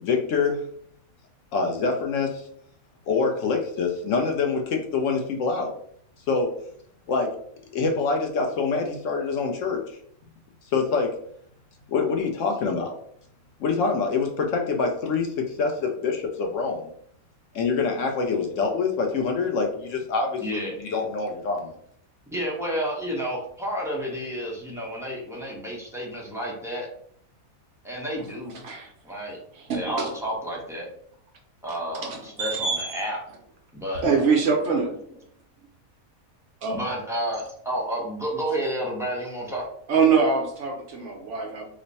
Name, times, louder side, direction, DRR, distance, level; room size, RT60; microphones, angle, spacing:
voice 1, 0.0-0.6 1.5-2.4 3.1-5.7 6.3-6.5 7.1-7.3 7.7-9.8 10.7-11.1 11.9-12.9 13.6-16.9 17.5-21.8, left 4 dB, 70° left, 2 dB, 0.9 m, -25 dB
voice 2, 20.4-20.8 22.3-26.9 27.8-28.6 29.0-29.4 29.7-30.9 31.6-33.2 33.7-34.0 36.7-39.7, equal, 5° right, -4 dB, 0.6 m, -30 dB
voice 3, 29.5-30.1 32.0-33.1 34.0-34.9 36.6-36.8 39.9-41.6, right 5 dB, 65° right, 1 dB, 0.9 m, -24 dB
3.1 x 2.1 x 3.9 m, 0.65 s
omnidirectional pair, 1.5 m